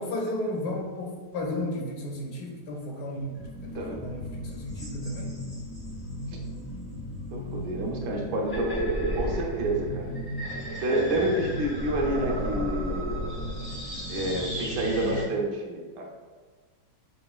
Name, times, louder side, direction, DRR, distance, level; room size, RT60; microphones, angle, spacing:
voice 1, 0.0-5.3, left 1 dB, 75° left, 0 dB, 1.1 m, -34 dB
sound 1, 3.3-15.3, equal, 35° left, 0.4 m, -34 dB
voice 2, 7.3-8.8 9.2-10.1 10.8-13.2 14.1-16.1, right 1 dB, 80° right, 0 dB, 1.3 m, -28 dB
4.8 x 3.0 x 2.3 m, 1.5 s
omnidirectional pair, 1.8 m